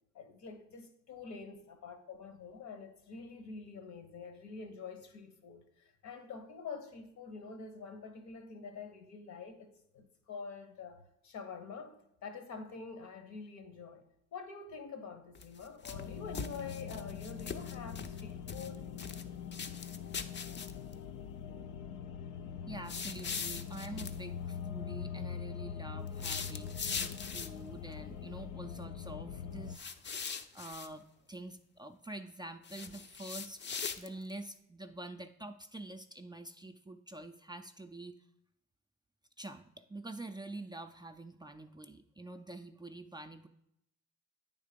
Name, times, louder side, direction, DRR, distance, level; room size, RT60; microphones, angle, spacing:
voice 1, 0.1-14.0 14.3-18.9, left 5 dB, 70° left, 1.2 m, -47 dB
sound 1, 15.3-16.0 16.3-18.2 18.5-19.2 19.5-20.9 22.9-24.2 26.1-27.7 29.7-30.9 32.6-34.3, left 6 dB, 35° left, 0.6 m, -41 dB
sound 2, 15.9-29.8, left 7 dB, 85° left, 0.5 m, -43 dB
voice 2, 22.7-33.6 34.0-38.2 39.4-43.5, right 2 dB, 15° right, 0.4 m, -47 dB
8.9 x 3.7 x 5.1 m
cardioid pair, 90°, 30 cm